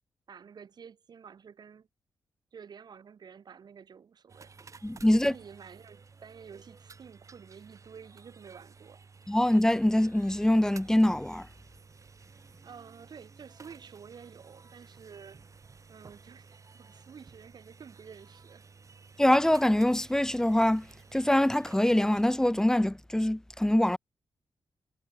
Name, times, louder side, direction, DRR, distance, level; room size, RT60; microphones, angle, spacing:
voice 1, 0.3-1.9 2.5-4.5 5.1-9.0 12.6-15.4 15.9-18.6, right 7 dB, 60° right, 3.6 m, -50 dB
sound 1, 4.3-22.2, right 4 dB, 40° right, 4.2 m, -54 dB
voice 2, 4.8-5.3 9.3-11.5 19.2-20.9 21.1-24.0, left 1 dB, 5° left, 0.7 m, -24 dB
cardioid pair, 90°, 8 cm